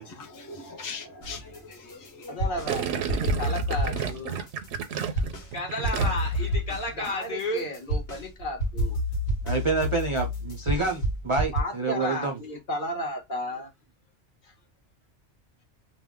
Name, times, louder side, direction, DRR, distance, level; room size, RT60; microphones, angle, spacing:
voice 1, 0.0-2.6, left 4 dB, 25° left, 0.4 m, -41 dB
sound 1, 1.2-2.7 3.1-5.5 5.8-11.6, equal, 65° left, 1.3 m, -29 dB
voice 2, 2.3-4.4 5.0-9.0 11.5-13.7 14.4-14.5, left 1 dB, 50° left, 1.1 m, -33 dB
Gurgling, 2.7-6.4 6.7-7.1, right 8 dB, 90° right, 0.9 m, -32 dB
voice 3, 9.4-12.4, right 3 dB, 45° right, 0.4 m, -27 dB
2.5 x 2.1 x 3.5 m
omnidirectional pair, 1.2 m